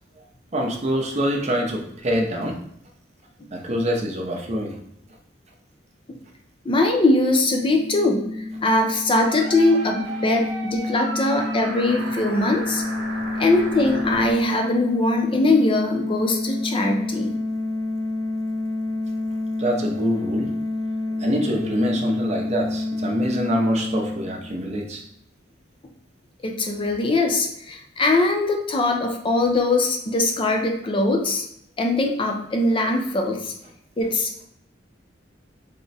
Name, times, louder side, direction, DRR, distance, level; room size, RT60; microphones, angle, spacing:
voice 1, 0.5-2.5 3.5-4.8 19.6-20.6 21.1-25.0, equal, 35° right, 1 dB, 0.6 m, -25 dB
voice 2, 6.6-12.8 13.4-17.4 26.4-31.4 31.8-33.5 34.0-34.4, left 2 dB, 30° left, 2 dB, 0.5 m, -21 dB
sound 1, 7.4-24.9, left 2 dB, 80° left, 0.7 m, -29 dB
sound 2, 9.3-14.3, right 2 dB, 80° right, 0.7 m, -34 dB
3.5 x 2.1 x 4.0 m, 0.73 s
head